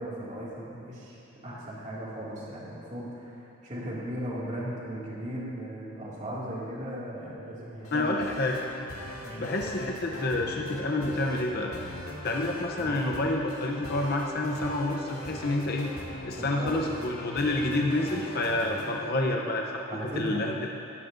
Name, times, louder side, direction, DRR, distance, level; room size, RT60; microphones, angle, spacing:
voice 1, 0.0-8.2 9.2-9.5 12.8-12.9 16.4-16.8 19.9-20.4, right 1 dB, 35° right, -6 dB, 2.3 m, -37 dB
sound 1, 7.8-19.1, left 1 dB, 85° left, 2.0 m, -40 dB
voice 2, 7.9-8.6 9.4-11.7 12.2-15.9 16.2-19.8 20.2-20.5, left 2 dB, 45° left, 0 dB, 0.7 m, -28 dB
16.0 x 13.0 x 2.6 m, 2.8 s
head